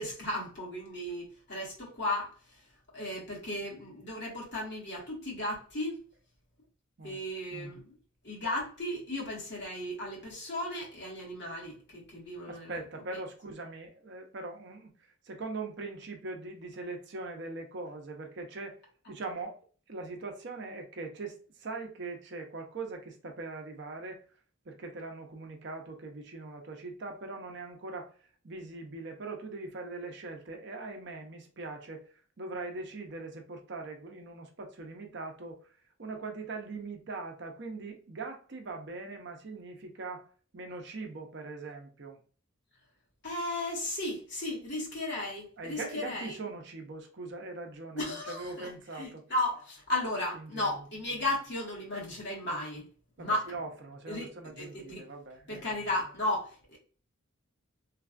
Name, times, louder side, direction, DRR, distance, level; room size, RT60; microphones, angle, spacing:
voice 1, 0.0-2.6 2.9-6.0 7.0-7.9 8.2-12.8 13.1-13.2 43.2-46.4 47.9-52.9 53.2-53.5 54.1-55.0 55.5-56.8, left 1 dB, 55° left, 1.5 m, -35 dB
voice 2, 12.5-14.9 15.2-18.8 19.1-19.6 19.9-24.2 24.7-28.1 28.4-32.1 32.4-35.6 36.0-40.3 40.5-42.2 45.6-49.2 50.5-50.7 53.2-55.6, right 3 dB, 55° right, 0.6 m, -41 dB
3.2 x 2.3 x 2.4 m
head